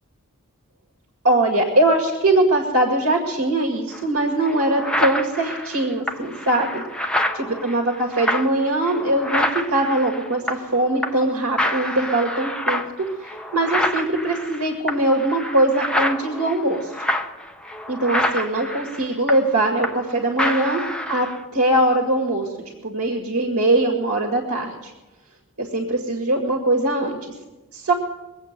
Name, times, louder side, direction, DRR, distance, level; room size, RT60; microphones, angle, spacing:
voice 1, 1.2-6.8 7.3-16.9 17.9-20.8 21.1-21.3 21.5-22.5 22.8-24.9 25.6-27.2 27.7-27.9, right 1 dB, 75° right, 2 dB, 2.0 m, -21 dB
sound 1, 3.9-4.0 4.4-10.8 11.0-11.3 11.6-20.1 20.4-21.4, left 1 dB, 5° left, 0.9 m, -27 dB
22.5 x 8.4 x 6.7 m, 1.1 s
head